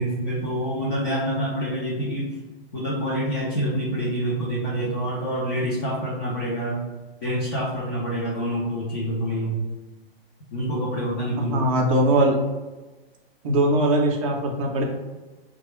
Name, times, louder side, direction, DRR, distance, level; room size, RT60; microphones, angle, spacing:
voice 1, 0.0-2.3 2.7-6.8 7.2-9.7 10.5-11.7, right 1 dB, 25° left, -5 dB, 0.4 m, -27 dB
voice 2, 11.5-12.3 13.4-14.8, right 1 dB, 35° right, 0 dB, 0.5 m, -20 dB
3.7 x 2.3 x 3.0 m, 1.2 s
hypercardioid pair, 165°, 31 cm